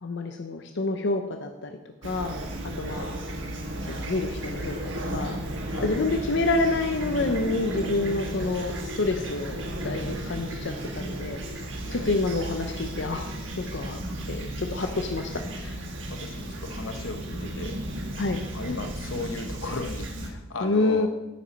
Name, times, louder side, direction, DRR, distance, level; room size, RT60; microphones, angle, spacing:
voice 1, 0.0-2.4 2.8-3.1 3.8-4.8 5.1-5.4 5.8-11.4 11.9-13.3 13.6-14.0 14.3-15.3 15.6-15.8 18.2-18.4 20.6-21.1, left 3 dB, 65° left, 5 dB, 0.7 m, -28 dB
Fowl / Chirp tweet, 2.0-20.3, right 1 dB, 70° right, 1.4 m, -34 dB
voice 2, 5.7-6.0 11.8-12.1 16.1-17.7 18.5-21.1, left 3 dB, 85° left, 7 dB, 1.0 m, -36 dB
8.5 x 7.4 x 5.2 m, 1.0 s
head